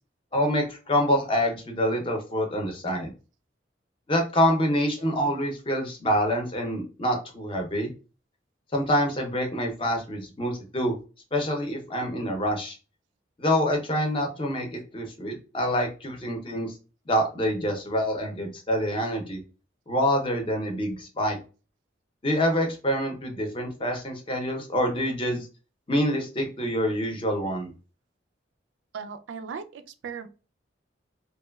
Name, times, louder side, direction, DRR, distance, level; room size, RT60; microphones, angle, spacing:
voice 1, 0.3-3.1 4.1-7.9 8.7-10.9 11.3-12.8 13.4-16.7 17.1-19.4 19.9-21.4 22.2-25.5 25.9-27.7, equal, 30° left, 0.6 m, -26 dB
voice 2, 28.9-30.3, right 6 dB, 85° right, 0.3 m, -37 dB
3.0 x 2.2 x 2.2 m
head